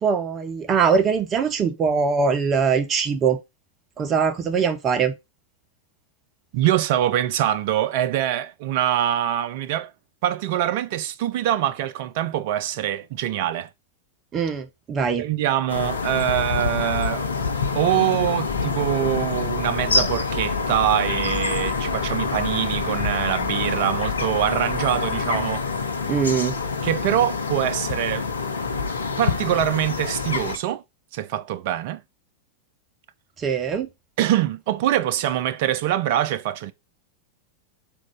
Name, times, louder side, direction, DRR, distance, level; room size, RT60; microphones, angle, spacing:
voice 1, 0.0-3.4 4.0-5.1 14.3-15.3 26.1-26.6 33.4-33.9, right 6 dB, 25° right, 0.7 m, -22 dB
voice 2, 6.5-9.9 10.2-13.7 15.2-17.3 17.7-25.6 26.8-28.3 29.2-30.8 31.1-32.0 34.2-36.7, right 12 dB, 50° right, 0.4 m, -24 dB
sound 1, 15.7-30.6, left 4 dB, 75° left, 0.5 m, -26 dB
sound 2, 18.5-25.6, left 5 dB, 10° left, 1.2 m, -37 dB
3.6 x 2.9 x 3.7 m
figure-of-eight pair, 90°, 0 cm